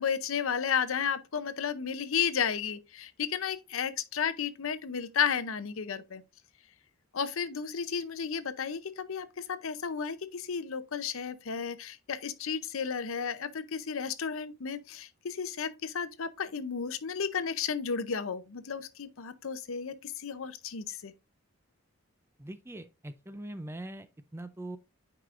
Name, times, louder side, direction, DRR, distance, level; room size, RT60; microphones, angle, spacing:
voice 1, 0.0-6.2 7.1-21.1, left 7 dB, 65° left, 0.6 m, -33 dB
voice 2, 22.4-24.8, right 1 dB, 10° right, 0.4 m, -42 dB
9.2 x 4.9 x 2.5 m
head